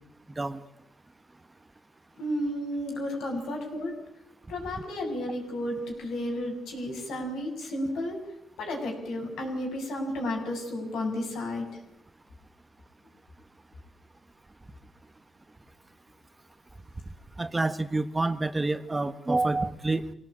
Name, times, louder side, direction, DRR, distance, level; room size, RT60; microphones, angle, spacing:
voice 1, 2.2-3.9 4.5-8.2 8.6-11.7, left 1 dB, 85° left, 2 dB, 7.4 m, -32 dB
voice 2, 17.4-20.1, right 2 dB, 20° right, 11 dB, 1.3 m, -28 dB
25.0 x 18.0 x 8.9 m, 0.77 s
cardioid pair, 90°, 0 cm